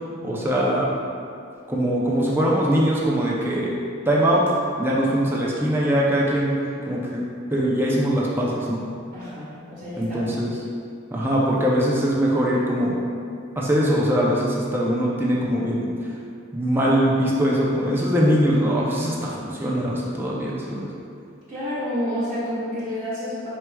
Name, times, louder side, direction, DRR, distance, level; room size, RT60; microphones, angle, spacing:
voice 1, 0.2-1.0 1.7-3.7 4.1-4.4 4.8-6.6 6.9-7.2 7.5-8.8 10.0-10.5 11.1-13.0 13.6-16.1 16.5-20.9, equal, 10° right, -5 dB, 0.5 m, -22 dB
voice 2, 9.1-10.6 21.5-23.5, equal, 40° right, -10 dB, 0.9 m, -30 dB
4.5 x 4.4 x 2.3 m, 2.4 s
head